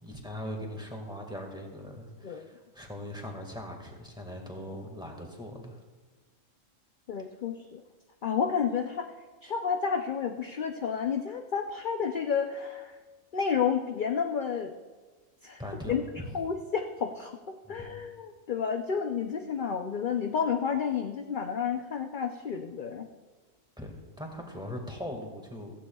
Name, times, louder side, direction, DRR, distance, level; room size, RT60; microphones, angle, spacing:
voice 1, 0.0-5.8 15.6-16.3 17.6-18.0 23.8-25.7, left 1 dB, 5° right, 1 dB, 1.8 m, -40 dB
voice 2, 7.1-7.8 8.2-9.1 9.4-12.9 13.3-14.7 15.4-15.6 15.9-16.0 16.3-17.3 17.7-23.1, left 6 dB, 50° left, 4 dB, 0.7 m, -30 dB
16.0 x 14.5 x 2.3 m, 1.3 s
omnidirectional pair, 1.3 m